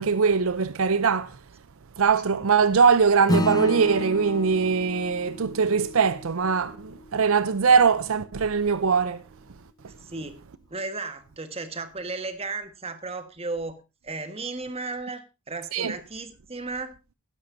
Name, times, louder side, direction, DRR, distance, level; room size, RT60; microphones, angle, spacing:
voice 1, 0.0-1.3 2.0-9.2 15.7-15.9, right 5 dB, 70° right, 0.6 m, -21 dB
Acoustic guitar / Strum, 3.3-8.1, left 1 dB, 15° left, 0.7 m, -32 dB
voice 2, 10.0-10.4 10.7-17.0, right 3 dB, 25° right, 1.5 m, -35 dB
16.0 x 12.0 x 2.6 m
head